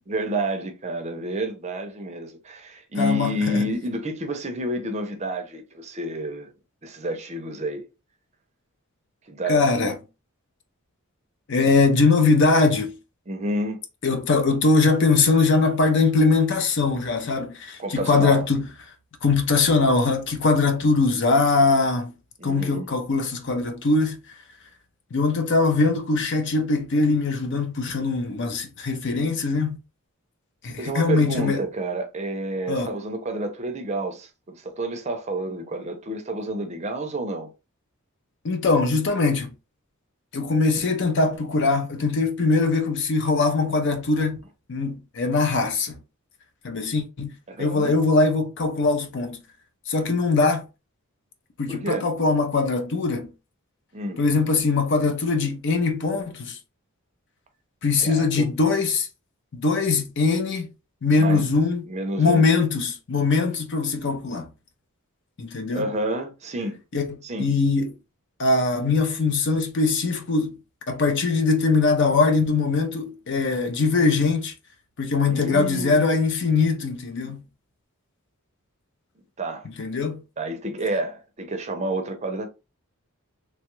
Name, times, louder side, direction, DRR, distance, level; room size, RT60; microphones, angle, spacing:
voice 1, 0.1-6.5 6.8-7.8 9.3-9.9 13.3-13.8 17.8-18.4 22.4-22.9 30.8-37.5 47.5-47.9 51.7-52.1 53.9-54.2 58.0-58.5 61.2-61.5 61.9-62.5 65.7-66.8 67.2-67.5 75.3-77.3 79.4-79.7 80.4-82.5, right 1 dB, 30° right, 0.5 m, -30 dB
voice 2, 3.0-3.6 9.5-10.0 11.5-12.9 14.0-18.7 19.2-22.1 22.4-24.2 25.1-29.8 30.6-31.6 32.7-32.9 38.4-39.5 40.3-44.4 44.7-45.9 46.6-49.4 49.9-50.7 51.6-53.3 54.2-56.6 57.8-59.1 59.5-60.7 61.0-61.8 62.2-64.5 65.4-65.9 66.9-67.1 67.4-67.9 68.4-70.6 70.9-74.5 75.0-77.4 79.8-80.2, left 3 dB, 55° left, 0.6 m, -21 dB
3.0 x 2.3 x 3.0 m
head